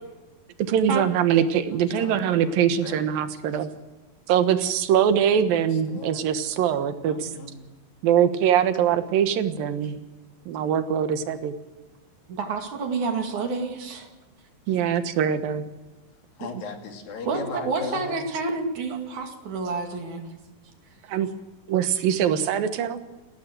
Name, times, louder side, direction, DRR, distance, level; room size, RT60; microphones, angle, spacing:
voice 1, 0.7-3.7 4.3-7.3 8.0-10.1 10.5-11.5 14.7-15.6 21.1-21.3 21.7-23.0, right 9 dB, 85° right, 10 dB, 3.1 m, -22 dB
voice 2, 1.7-3.3 5.5-6.2 7.1-7.7 16.4-18.2, left 4 dB, 90° left, 4 dB, 4.3 m, -39 dB
voice 3, 12.3-14.1 17.3-20.2, right 4 dB, 60° right, 5 dB, 3.7 m, -29 dB
29.5 x 12.5 x 7.8 m, 1.2 s
omnidirectional pair, 4.0 m